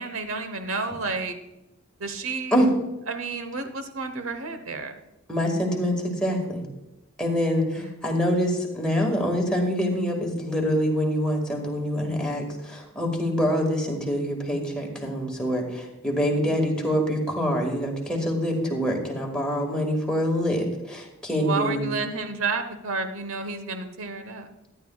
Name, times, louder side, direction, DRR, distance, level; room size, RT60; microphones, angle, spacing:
voice 1, 0.0-1.3 2.0-2.6 3.1-4.9 7.7-7.9 16.3-16.5 21.4-24.5, right 4 dB, 70° right, 8 dB, 1.1 m, -31 dB
voice 2, 5.3-6.7 7.2-21.9, equal, 5° left, -1 dB, 1.9 m, -25 dB
14.5 x 10.0 x 2.4 m, 0.95 s
head